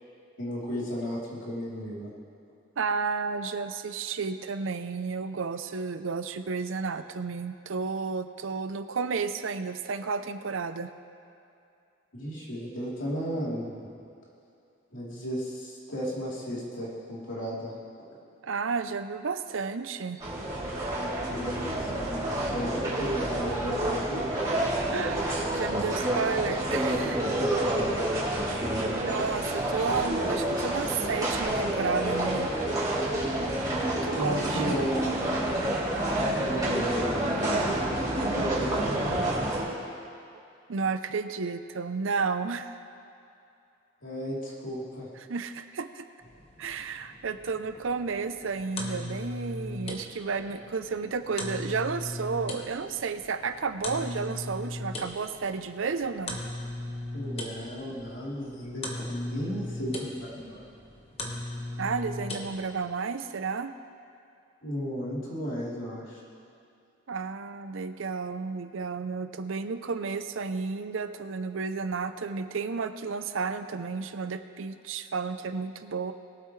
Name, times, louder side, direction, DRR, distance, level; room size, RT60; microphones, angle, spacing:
voice 1, 0.4-2.1 12.1-13.7 14.9-17.7 21.3-22.7 23.0-24.4 27.7-27.9 34.1-34.9 36.4-37.6 38.3-39.5 44.0-45.1 57.1-60.6 64.6-66.2, equal, 70° left, -7 dB, 3.4 m, -34 dB
voice 2, 2.8-10.9 18.4-20.2 21.9-22.0 24.9-27.3 29.0-32.5 34.0-34.7 40.7-42.8 45.3-46.0 46.6-56.4 61.8-63.7 67.1-76.1, right 5 dB, 80° right, 10 dB, 0.6 m, -32 dB
sound 1, 20.2-39.6, right 1 dB, 20° right, 3.0 m, -28 dB
sound 2, 46.2-62.9, left 1 dB, 30° left, 1.3 m, -39 dB
21.5 x 8.3 x 3.2 m, 2.6 s
head